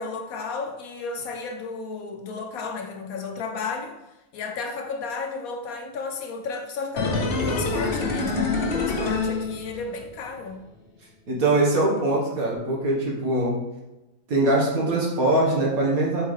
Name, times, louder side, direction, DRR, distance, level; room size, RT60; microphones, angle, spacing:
voice 1, 0.0-4.0 4.3-10.6, left 4 dB, 75° left, 4 dB, 1.0 m, -33 dB
sound 1, 7.0-10.1 10.4-10.5, left 3 dB, 45° left, 1.0 m, -26 dB
voice 2, 11.3-13.6 14.3-16.3, right 2 dB, 70° right, -3 dB, 2.0 m, -22 dB
7.8 x 4.5 x 3.4 m, 1.0 s
omnidirectional pair, 1.6 m